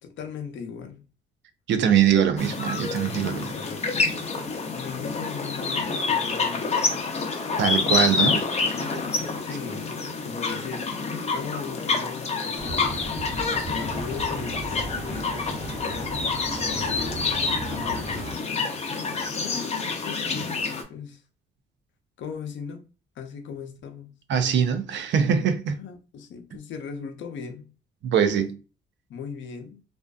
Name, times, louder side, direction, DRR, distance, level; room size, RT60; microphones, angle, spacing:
voice 1, 0.0-1.0 3.3-4.2 4.7-7.1 9.4-9.9 10.2-13.0 13.7-16.2 16.7-18.7 19.1-20.4 20.8-21.2 22.2-22.8 23.2-24.1 25.8-27.7 29.1-29.8, left 6 dB, 70° left, 0.6 m, -38 dB
voice 2, 1.7-3.5 7.6-8.5 24.3-25.8 28.0-28.6, right 8 dB, 65° right, 0.5 m, -22 dB
sound 1, 2.4-20.8, left 4 dB, 35° left, 0.6 m, -28 dB
sound 2, 12.6-18.3, right 2 dB, 45° right, 1.0 m, -36 dB
2.5 x 2.3 x 2.3 m
cardioid pair, 90°, 20 cm